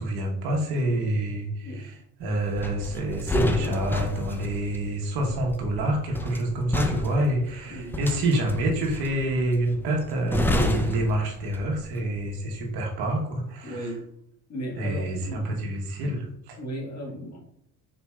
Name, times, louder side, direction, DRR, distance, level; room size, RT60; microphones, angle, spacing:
voice 1, 0.0-13.9 14.8-16.6, right 1 dB, 80° right, 0 dB, 1.2 m, -27 dB
sound 1, 2.6-11.9 12.2-12.5, left 1 dB, 5° left, 0.4 m, -30 dB
voice 2, 13.6-14.0 14.5-15.5 16.6-17.4, equal, 45° left, -1 dB, 1.7 m, -35 dB
5.3 x 4.2 x 2.3 m, 0.72 s
cardioid pair, 95°, 38 cm